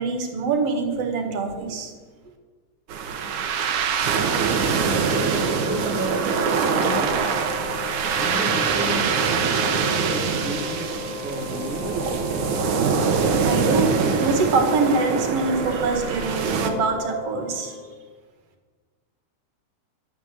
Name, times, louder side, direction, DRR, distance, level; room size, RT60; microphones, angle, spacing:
voice 1, 0.0-1.9 13.4-17.8, right 4 dB, 55° right, 5 dB, 2.8 m, -24 dB
sound 1, 2.9-16.7, right 5 dB, 80° right, 2.7 m, -24 dB
Wind instrument woodwind instrument, 4.8-18.2, left 7 dB, 70° left, 1.6 m, -37 dB
voice 2, 5.6-7.5 8.1-9.1 9.7-12.0, equal, 5° right, 0 dB, 1.5 m, -33 dB
12.5 x 8.9 x 7.8 m, 1.4 s
omnidirectional pair, 3.4 m